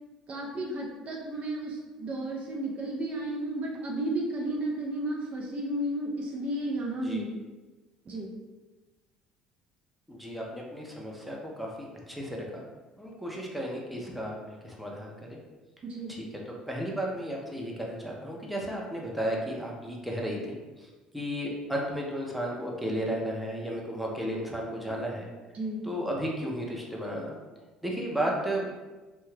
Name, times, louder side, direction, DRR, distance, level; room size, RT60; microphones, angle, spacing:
voice 1, 0.3-7.3 8.1-8.3 15.8-16.1 24.9-25.0 25.5-25.8, right 1 dB, 40° right, -1 dB, 0.5 m, -33 dB
voice 2, 10.1-12.6 13.0-15.4 16.7-20.6 21.1-25.3 25.9-27.4 27.8-28.7, equal, ahead, -2 dB, 0.6 m, -33 dB
2.7 x 2.2 x 3.2 m, 1.2 s
hypercardioid pair, 60°, 3 cm